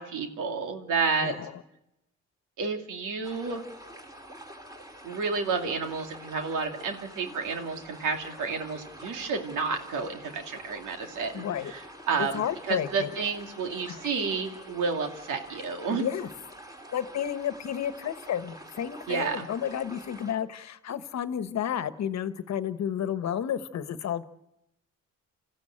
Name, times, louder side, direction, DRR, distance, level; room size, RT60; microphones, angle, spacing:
voice 1, 0.0-1.3 2.6-3.6 5.0-11.8 12.1-16.1 19.1-19.5, right 5 dB, 85° right, 4 dB, 2.7 m, -30 dB
voice 2, 1.2-1.6 11.3-11.7 12.2-13.1 13.9-14.0 15.9-16.3 16.9-24.2, left 9 dB, 60° left, 12 dB, 1.2 m, -31 dB
sound 1, 3.2-20.3, equal, 10° right, 3.1 m, -47 dB
27.5 x 14.5 x 8.9 m, 0.90 s
cardioid pair, 90°, 30 cm